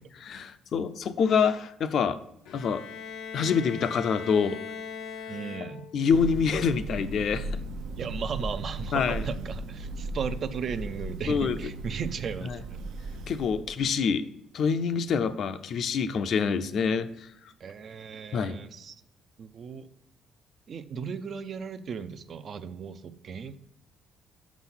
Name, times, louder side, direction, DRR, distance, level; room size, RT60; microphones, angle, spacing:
voice 1, 0.1-2.2 2.5-2.9 3.3-4.6 5.9-7.5 8.9-9.3 11.3-11.6 12.5-12.6 13.3-14.2 14.5-17.3 18.3-18.6, left 6 dB, 50° left, 11 dB, 0.5 m, -26 dB
Bowed string instrument, 2.4-6.1, left 6 dB, 75° left, 0.8 m, -40 dB
voice 2, 5.3-5.9 7.9-12.8 17.6-19.0 19.4-19.9 20.7-23.6, right 6 dB, 40° right, 11 dB, 0.5 m, -36 dB
Thunder, 6.1-14.0, right 2 dB, 80° right, 0.8 m, -37 dB
6.2 x 6.1 x 5.6 m, 0.79 s
cardioid pair, 145°, 0 cm